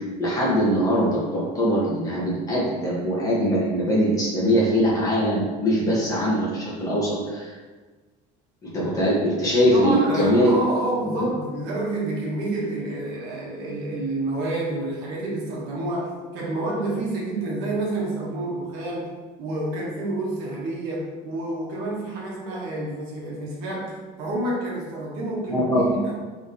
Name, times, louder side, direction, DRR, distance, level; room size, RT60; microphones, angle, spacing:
voice 1, 0.0-7.5 8.6-10.6 11.0-11.3 25.5-25.8, equal, 20° left, -7 dB, 1.2 m, -22 dB
voice 2, 9.7-26.1, right 2 dB, 65° right, -4 dB, 1.2 m, -29 dB
3.4 x 3.0 x 4.1 m, 1.4 s
cardioid pair, 160°, 18 cm